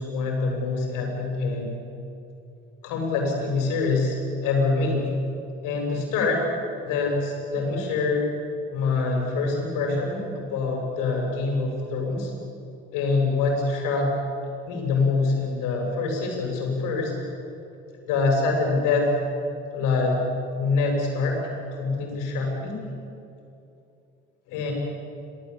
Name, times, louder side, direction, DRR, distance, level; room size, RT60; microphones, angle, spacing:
voice 1, 0.0-1.8 2.8-4.2 4.4-5.0 5.6-6.4 6.8-8.3 8.7-12.3 12.9-14.1 14.7-17.1 18.1-19.1 19.7-20.2 20.6-21.4 21.7-22.8 24.5-24.7, left 3 dB, 65° left, 1 dB, 7.8 m, -25 dB
27.5 x 19.0 x 8.7 m, 2.7 s
hypercardioid pair, 60°, 35 cm